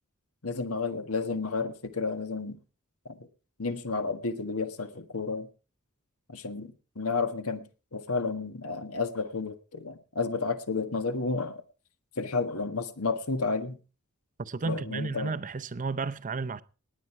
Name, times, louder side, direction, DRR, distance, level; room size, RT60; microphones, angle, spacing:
voice 1, 0.4-2.6 3.0-3.2 3.6-5.5 6.3-11.6 12.2-13.8 14.6-15.3, left 4 dB, 75° left, 1.6 m, -31 dB
voice 2, 14.4-16.6, right 4 dB, 35° right, 0.6 m, -32 dB
19.0 x 8.9 x 4.7 m
head